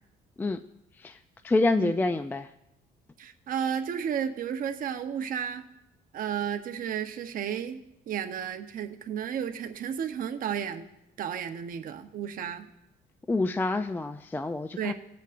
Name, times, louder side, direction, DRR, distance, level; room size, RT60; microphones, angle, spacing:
voice 1, 1.4-2.5 13.3-14.9, left 2 dB, 10° left, 11 dB, 0.3 m, -27 dB
voice 2, 3.2-5.7 6.1-7.8 8.1-10.8 11.2-12.7 14.8-14.9, right 8 dB, 55° right, 7 dB, 0.9 m, -32 dB
20.0 x 8.2 x 2.5 m, 0.87 s
cardioid pair, 110°, 17 cm